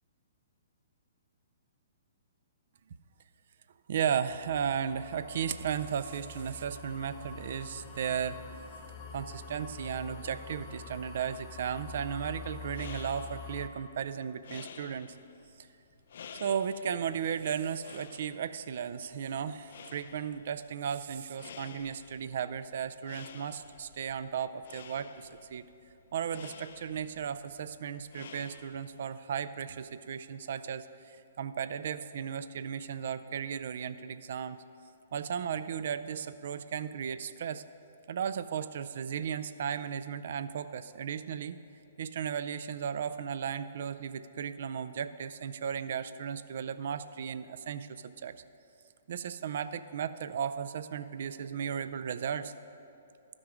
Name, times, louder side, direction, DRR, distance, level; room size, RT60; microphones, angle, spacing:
voice 1, 3.9-8.6 9.1-15.2 15.6-15.7 16.4-25.7 26.1-34.6 35.1-37.6 38.1-41.6 42.0-48.4 49.1-52.5, right 8 dB, 60° right, 13 dB, 0.4 m, -35 dB
sound 1, 4.3-13.7, left 4 dB, 35° left, 0.8 m, -46 dB
sound 2, 12.7-29.1, left 7 dB, 60° left, 0.4 m, -52 dB
12.5 x 6.1 x 4.9 m, 2.7 s
figure-of-eight pair, 125°, 0 cm